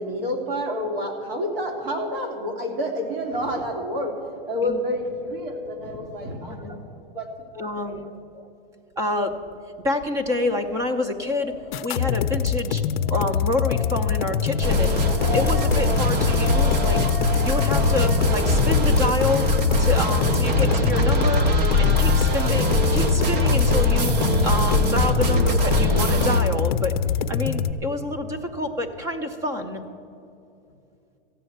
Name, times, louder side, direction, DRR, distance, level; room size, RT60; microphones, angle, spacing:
voice 1, 0.0-4.1 4.5-6.8 7.1-7.3 7.5-8.1, equal, 70° right, 2 dB, 3.0 m, -29 dB
voice 2, 6.5-6.8 7.6-8.5 9.0-9.4 9.8-11.6 11.8-12.8 13.1-19.5 19.8-21.5 21.8-24.1 24.4-26.9 27.3-29.8, left 2 dB, 10° right, 7 dB, 0.6 m, -27 dB
Wind, 10.5-18.3, left 7 dB, 15° left, 0.9 m, -36 dB
sound 1, 11.7-27.7, left 8 dB, 55° left, 0.6 m, -24 dB
sound 2, 14.6-26.4, left 1 dB, 45° right, 1.1 m, -22 dB
14.0 x 9.9 x 7.9 m, 2.7 s
supercardioid pair, 170°, 29 cm